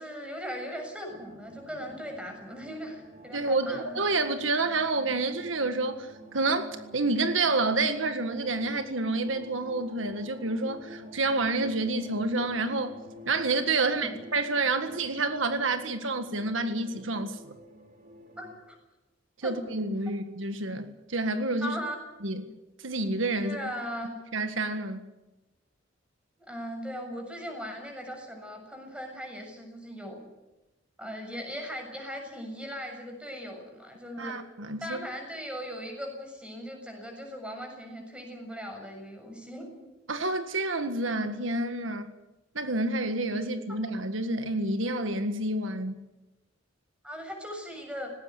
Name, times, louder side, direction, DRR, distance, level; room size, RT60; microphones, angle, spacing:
voice 1, 0.0-4.0 13.8-14.1 18.4-18.8 19.4-19.5 21.6-22.0 23.4-24.1 26.4-30.2 31.0-34.4 34.8-39.7 43.7-43.8 47.0-48.1, equal, 5° right, 3 dB, 7.0 m, -39 dB
sound 1, 1.1-18.6, equal, 45° right, 3.6 m, -49 dB
voice 2, 3.3-13.0 13.3-17.5 19.4-21.8 22.2-22.5 22.8-23.6 24.3-25.0 34.2-35.1 40.1-42.1 42.5-46.0, right 2 dB, 80° right, 8 dB, 1.7 m, -29 dB
19.5 x 18.0 x 9.6 m, 1.0 s
head